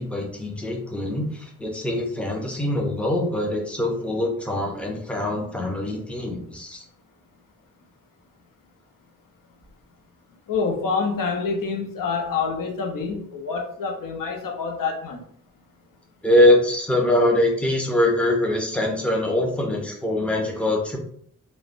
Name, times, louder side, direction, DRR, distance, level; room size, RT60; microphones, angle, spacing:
voice 1, 0.0-6.8 16.2-21.0, left 1 dB, 5° left, 0 dB, 0.4 m, -23 dB
voice 2, 10.5-15.2, left 5 dB, 80° left, 2 dB, 0.6 m, -27 dB
3.1 x 2.0 x 2.4 m, 0.62 s
wide cardioid pair, 170°, 32 cm